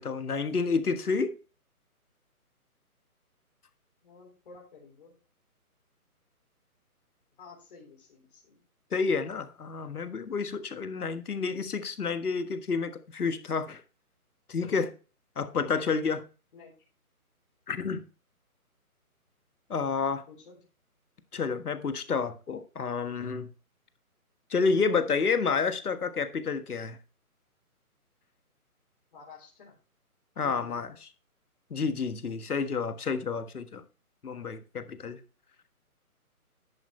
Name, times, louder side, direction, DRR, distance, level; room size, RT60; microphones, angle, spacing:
voice 1, 0.0-1.3 8.9-13.8 14.5-14.9 15.4-16.2 17.7-18.0 19.7-20.2 21.3-23.5 24.5-27.0 30.4-30.9 31.7-33.8 34.2-35.2, left 5 dB, 75° left, 1.6 m, -29 dB
voice 2, 4.0-5.1 7.3-8.6 15.7-15.9 16.5-16.7 20.0-20.6 29.1-29.7 30.4-30.8, left 4 dB, 35° left, 3.7 m, -51 dB
10.5 x 8.5 x 3.2 m
hypercardioid pair, 165°, 45 cm